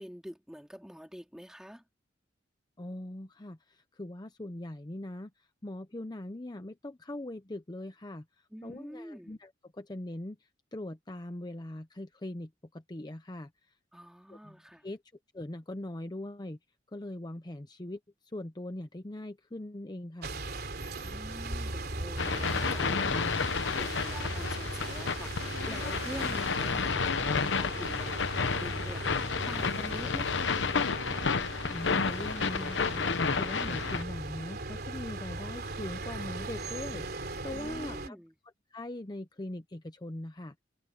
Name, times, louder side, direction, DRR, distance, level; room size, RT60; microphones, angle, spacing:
voice 1, 0.0-1.8 8.5-9.4 13.9-14.9 21.0-30.5 37.5-38.4, equal, 5° right, 3.8 m, -46 dB
voice 2, 2.8-13.7 14.3-15.0 15.3-16.6 16.9-18.0 18.3-20.4 31.7-33.0 33.3-38.2 38.7-40.5, left 1 dB, 25° left, 0.8 m, -41 dB
sound 1, 20.2-38.1, right 2 dB, 60° right, 3.2 m, -38 dB
sound 2, 22.2-34.0, left 5 dB, 80° left, 0.9 m, -31 dB
head